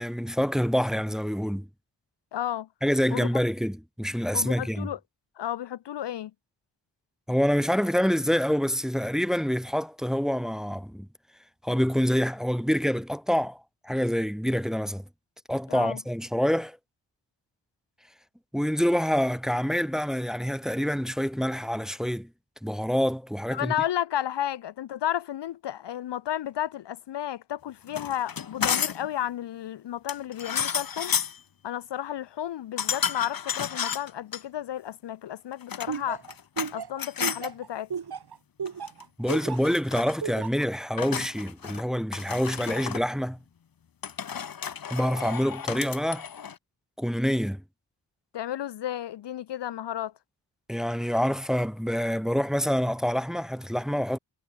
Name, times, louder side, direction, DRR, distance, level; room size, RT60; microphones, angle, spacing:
voice 1, 0.0-1.7 2.8-4.9 7.3-11.1 11.6-15.0 15.5-16.8 18.5-22.3 22.6-23.7 39.2-43.4 44.9-46.2 47.0-47.6 50.7-54.2, equal, ahead, 1.1 m, -26 dB
voice 2, 2.3-2.7 3.1-3.3 4.3-5.0 5.4-6.3 15.7-16.0 23.5-31.1 31.6-36.2 36.7-37.9 48.3-50.1, left 11 dB, 65° left, 0.6 m, -32 dB
sound 1, 27.9-29.1 30.1-31.4 32.8-34.4 35.5-36.7 37.0-37.5 38.7-39.0 39.3-40.2 41.0-41.8 42.1-43.0 44.0-46.6, left 7 dB, 50° left, 1.2 m, -32 dB
Laughter, 35.9-39.7 40.2-40.7, right 6 dB, 60° right, 2.6 m, -34 dB
wide cardioid pair, 100°, 45 cm